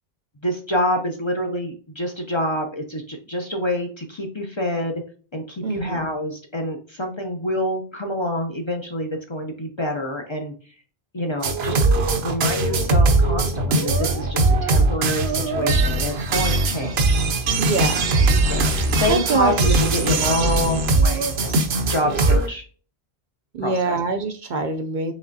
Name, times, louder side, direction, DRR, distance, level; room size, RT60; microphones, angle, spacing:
voice 1, 0.4-5.0 5.3-10.5 11.1-11.8 12.2-17.2 18.4-22.6 23.6-24.0, left 1 dB, 35° left, 2 dB, 0.6 m, -27 dB
voice 2, 5.6-6.1 17.6-18.1 19.1-19.8 20.2-20.3 23.5-25.1, right 3 dB, 60° right, 6 dB, 0.6 m, -24 dB
sound 1, 11.4-22.5, right 2 dB, 80° right, 0.9 m, -20 dB
5.0 x 3.2 x 2.6 m, 0.40 s
omnidirectional pair, 1.1 m